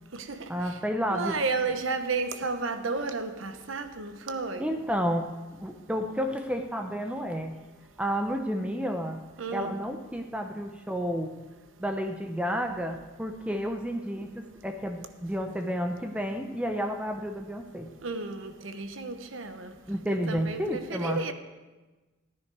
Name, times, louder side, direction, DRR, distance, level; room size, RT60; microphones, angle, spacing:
voice 1, 0.5-1.3 4.6-5.3 5.6-7.6 8.0-9.2 9.5-11.4 11.8-17.9 19.9-21.2, equal, 5° right, 0.6 m, -31 dB
voice 2, 1.1-4.7 9.4-9.8 18.0-19.7 20.1-21.3, right 4 dB, 85° right, 1.0 m, -32 dB
14.5 x 9.9 x 4.7 m
head